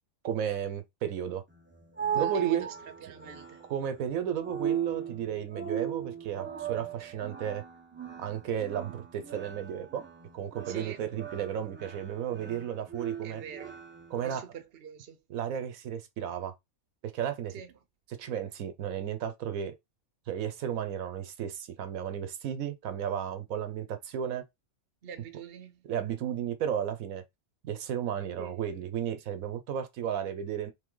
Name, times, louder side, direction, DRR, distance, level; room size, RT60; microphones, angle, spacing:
voice 1, 0.2-1.4 2.1-2.7 3.7-7.6 8.2-10.0 10.3-13.4 14.1-14.5 15.3-16.5 17.0-17.5 18.2-19.7 20.3-24.4 25.8-27.2 27.6-30.7, right 9 dB, 75° right, 1.1 m, -33 dB
sound 1, 1.5-14.4, right 8 dB, 20° right, 0.3 m, -38 dB
voice 2, 2.1-2.7 3.0-3.6 10.7-11.0 13.2-13.8 14.2-15.2 17.5-17.7 25.0-25.9 28.4-28.6, right 8 dB, 50° right, 0.8 m, -45 dB
3.7 x 3.2 x 3.8 m
omnidirectional pair, 1.5 m